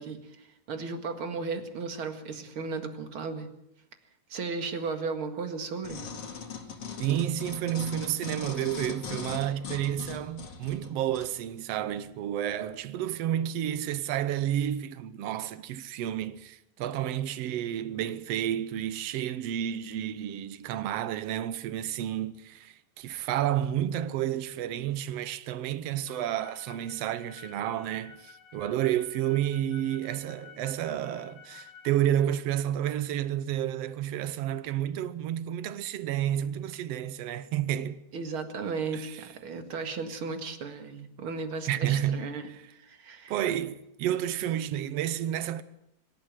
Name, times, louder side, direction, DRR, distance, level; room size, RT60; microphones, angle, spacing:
voice 1, 0.0-3.5 4.3-6.0 38.1-42.5 42.8-43.4, right 4 dB, 45° right, 2.4 m, -35 dB
sound 1, 5.8-11.3 11.9-12.0, left 6 dB, 45° left, 2.8 m, -40 dB
voice 2, 7.0-38.0 38.9-39.2 41.7-42.3 43.3-45.6, right 11 dB, 70° right, 1.5 m, -30 dB
sound 2, 26.1-32.0, left 7 dB, 75° left, 3.1 m, -51 dB
24.5 x 12.5 x 9.1 m
omnidirectional pair, 3.9 m